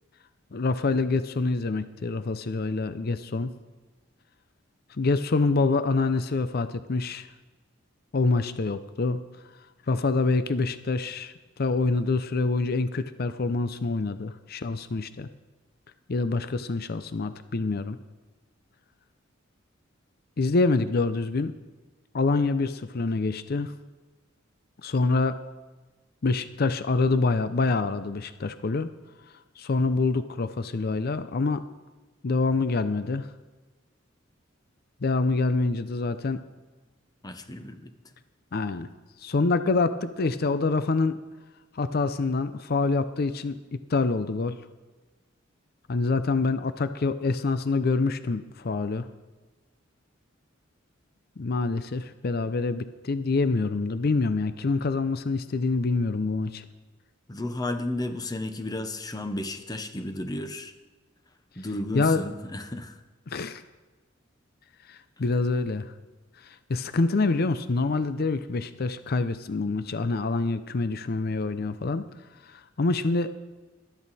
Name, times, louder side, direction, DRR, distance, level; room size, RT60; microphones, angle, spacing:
voice 1, 0.5-3.5 5.0-7.3 8.1-9.2 9.9-11.3 11.6-15.3 16.1-18.0 20.4-21.5 22.1-23.7 24.8-25.4 26.2-28.9 29.6-31.6 32.2-33.3 35.0-36.4 38.5-38.9 39.2-41.2 41.7-44.6 45.9-49.1 51.4-56.6 61.9-62.2 63.3-63.6 64.9-65.9 66.4-72.1 72.4-73.3, left 3 dB, 50° left, 12 dB, 0.5 m, -26 dB
voice 2, 37.2-37.9 57.3-60.7 61.6-62.9, left 1 dB, 20° left, 8 dB, 0.9 m, -33 dB
15.0 x 12.5 x 4.1 m, 1.2 s
head